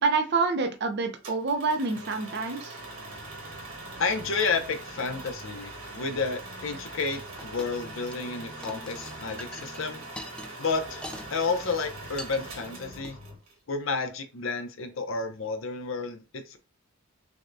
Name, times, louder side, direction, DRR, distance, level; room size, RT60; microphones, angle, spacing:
voice 1, 0.0-2.8, right 4 dB, 50° right, 0.5 m, -27 dB
sound 1, 1.2-13.5, right 2 dB, 80° right, 1.4 m, -43 dB
sound 2, 2.8-13.4, left 1 dB, 25° right, 0.9 m, -49 dB
voice 2, 4.0-10.0 10.6-11.0 11.3-13.2 13.7-16.6, left 4 dB, 60° left, 0.6 m, -31 dB
sound 3, 7.4-7.7 8.0-8.3 8.6-11.3 11.6-11.8 12.2-12.4 12.9-13.1, left 1 dB, 5° left, 0.3 m, -43 dB
6.1 x 2.2 x 2.6 m
head